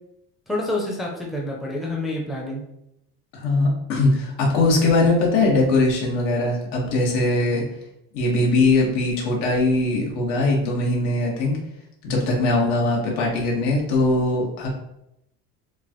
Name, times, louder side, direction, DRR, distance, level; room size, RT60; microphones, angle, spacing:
voice 1, 0.5-2.6, left 1 dB, ahead, -2 dB, 0.5 m, -28 dB
voice 2, 3.3-7.6 8.1-11.6 12.0-14.7, left 2 dB, 85° left, -2 dB, 1.6 m, -21 dB
7.1 x 2.4 x 3.0 m, 0.82 s
cardioid pair, 175°, 32 cm